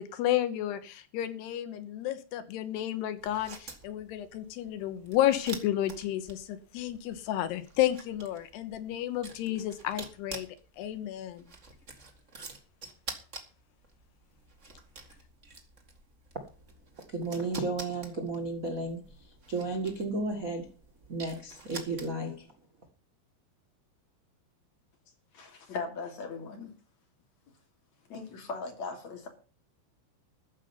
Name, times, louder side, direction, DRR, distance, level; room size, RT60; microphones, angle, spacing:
voice 1, 0.0-10.5 10.8-11.5, left 12 dB, 80° left, 3.1 m, -31 dB
sound 1, 3.2-22.4, right 3 dB, 45° right, 0.9 m, -48 dB
voice 2, 17.1-20.7 21.1-22.5, right 2 dB, 85° right, 0.7 m, -33 dB
voice 3, 25.3-26.7 28.1-29.3, left 4 dB, 45° left, 3.9 m, -38 dB
14.0 x 5.5 x 9.5 m
omnidirectional pair, 4.8 m